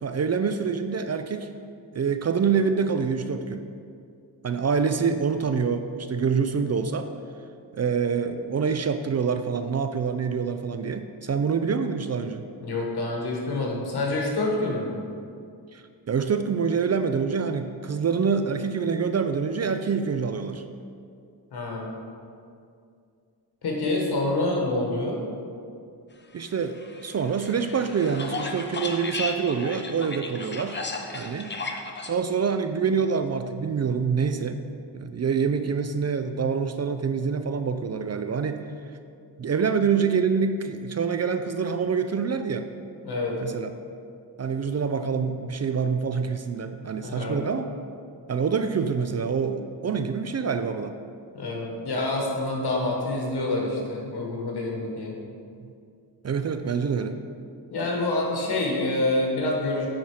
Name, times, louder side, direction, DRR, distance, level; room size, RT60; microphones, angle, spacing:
voice 1, 0.0-1.5 1.9-3.6 4.4-7.1 7.7-12.5 15.7-20.6 26.3-30.8 31.1-31.5 32.1-34.6 34.9-38.6 39.4-42.6 43.4-43.7 44.4-47.7 48.3-50.9 56.2-57.2, right 6 dB, 40° right, 9 dB, 0.4 m, -26 dB
voice 2, 12.6-15.0 21.5-21.9 23.6-25.2 43.0-43.4 47.0-47.4 51.3-55.1 57.7-59.9, left 2 dB, 65° left, -1 dB, 1.7 m, -27 dB
sound 1, 26.8-32.1, left 3 dB, 25° left, 0.7 m, -35 dB
9.4 x 4.4 x 4.9 m, 2.3 s
cardioid pair, 85°, 42 cm